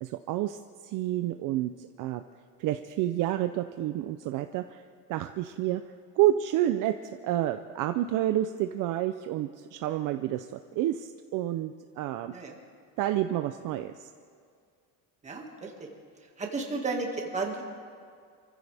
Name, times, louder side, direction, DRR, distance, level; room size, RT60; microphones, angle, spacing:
voice 1, 0.0-2.2 2.6-4.8 5.1-5.8 6.2-10.5 10.8-12.3 13.0-14.1, right 13 dB, 55° right, 8 dB, 0.6 m, -29 dB
voice 2, 15.2-15.9 16.4-17.6, right 3 dB, 20° right, 1 dB, 1.9 m, -33 dB
27.0 x 15.0 x 3.5 m, 2.2 s
cardioid pair, 160°, 38 cm